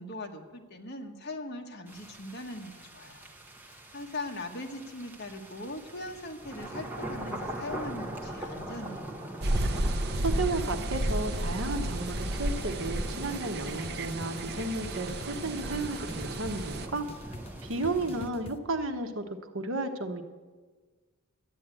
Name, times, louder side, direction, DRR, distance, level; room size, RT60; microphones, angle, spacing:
voice 1, 0.0-3.3 3.9-9.2, left 2 dB, 50° left, 4 dB, 1.4 m, -40 dB
sound 1, 1.9-18.3, right 1 dB, 10° right, 1.2 m, -42 dB
sound 2, 9.4-16.9, right 1 dB, 50° right, 0.7 m, -32 dB
voice 2, 10.1-17.1 17.6-20.2, right 2 dB, 65° right, 7 dB, 1.1 m, -33 dB
sound 3, 10.6-18.6, left 2 dB, 25° left, 0.7 m, -45 dB
12.0 x 9.4 x 9.0 m, 1.4 s
head